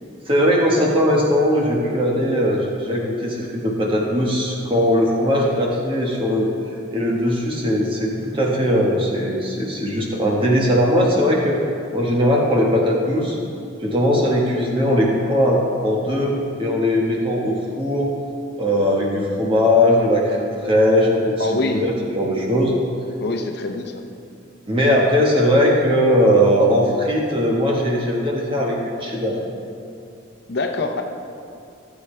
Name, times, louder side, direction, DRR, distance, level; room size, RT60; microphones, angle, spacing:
voice 1, 0.3-6.5 6.9-11.6 11.9-13.4 13.8-16.3 16.6-18.1 18.6-22.7 24.7-29.4, equal, 25° right, -2 dB, 1.4 m, -19 dB
voice 2, 21.4-21.9 23.2-24.0 30.5-31.0, left 3 dB, 55° left, 4 dB, 0.7 m, -24 dB
15.0 x 8.2 x 3.3 m, 2.5 s
head